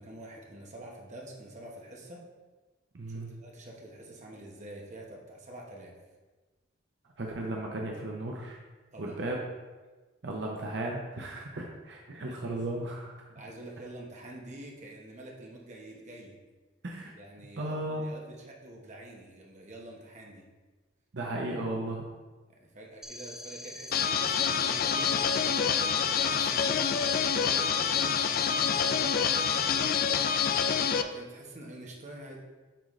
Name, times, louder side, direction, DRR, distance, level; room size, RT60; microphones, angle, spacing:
voice 1, 0.0-2.2 3.1-5.9 8.9-9.4 13.3-16.4 17.1-20.5 22.5-25.9 26.2-26.8 27.4-29.9 31.1-32.4, right 1 dB, 40° right, -1 dB, 1.1 m, -47 dB
voice 2, 2.9-3.3 7.2-8.6 9.0-9.4 10.2-13.3 16.8-17.1 17.6-18.1 21.1-22.0, right 1 dB, 65° right, -1 dB, 0.7 m, -35 dB
sound 1, 23.0-29.9, left 1 dB, 5° right, 0.8 m, -44 dB
sound 2, 23.9-31.0, left 7 dB, 50° left, 0.3 m, -27 dB
8.6 x 3.9 x 3.2 m, 1.3 s
head